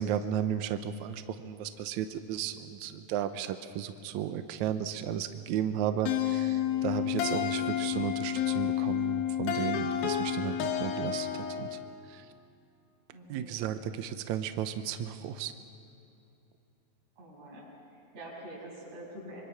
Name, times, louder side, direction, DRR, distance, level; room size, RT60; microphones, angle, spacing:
voice 1, 0.0-11.8 12.1-12.3 13.3-15.5, right 9 dB, 80° right, 9 dB, 1.6 m, -34 dB
sound 1, 6.1-11.8, left 10 dB, 75° left, 2.9 m, -30 dB
voice 2, 13.1-13.7 17.2-19.4, right 1 dB, 40° right, -4 dB, 7.9 m, -46 dB
25.5 x 25.0 x 5.8 m, 3.0 s
omnidirectional pair, 4.3 m